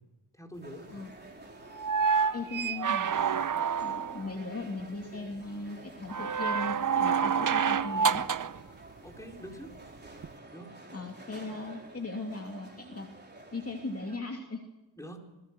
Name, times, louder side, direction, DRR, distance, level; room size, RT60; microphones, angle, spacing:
voice 1, 0.3-1.1 9.0-9.8 10.5-10.9 15.0-15.3, equal, 5° left, 2 dB, 4.5 m, -45 dB
sound 1, 0.6-14.2, right 2 dB, 20° right, 4.2 m, -50 dB
sound 2, 1.7-4.3 6.1-8.6 10.2-10.3, right 6 dB, 45° right, 0.8 m, -28 dB
voice 2, 2.3-3.4 3.8-8.2 10.9-13.1 13.5-14.6, left 3 dB, 30° left, 2 dB, 2.7 m, -38 dB
27.0 x 21.0 x 6.2 m, 1.1 s
wide cardioid pair, 95°, 45 cm